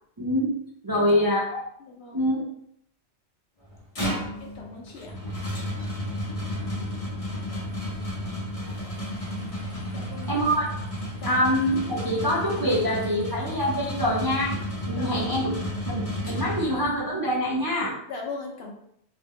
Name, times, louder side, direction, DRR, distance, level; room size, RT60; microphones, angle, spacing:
voice 1, 0.2-0.5 0.8-1.6 2.1-2.4 10.3-10.7 11.3-14.6 14.8-15.5 15.9-17.9, equal, 30° right, -7 dB, 0.4 m, -25 dB
voice 2, 0.9-1.3 1.8-2.2 3.9-5.2 9.9-10.3 11.2-11.4 15.0-15.3 18.1-18.7, left 4 dB, 65° left, 1 dB, 0.8 m, -39 dB
sound 1, 3.6-17.1, equal, 35° left, 0.8 m, -32 dB
2.6 x 2.1 x 3.5 m, 0.70 s
omnidirectional pair, 1.2 m